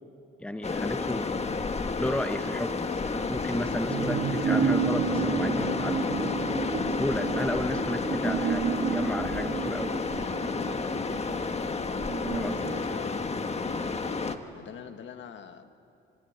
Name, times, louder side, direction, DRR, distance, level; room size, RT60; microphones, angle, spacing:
voice 1, 0.4-1.5 2.0-6.0 6.8-9.9 12.3-13.0, left 1 dB, 5° left, 8 dB, 1.0 m, -33 dB
sound 1, 0.6-14.4, left 4 dB, 30° left, 1.5 m, -31 dB
sound 2, 3.9-13.7 14.1-14.2, right 8 dB, 55° right, 1.5 m, -31 dB
voice 2, 12.3-13.2 14.0-14.1 14.5-15.7, left 8 dB, 70° left, 8 dB, 1.7 m, -45 dB
26.0 x 24.0 x 9.5 m, 2.6 s
cardioid pair, 90°, 20 cm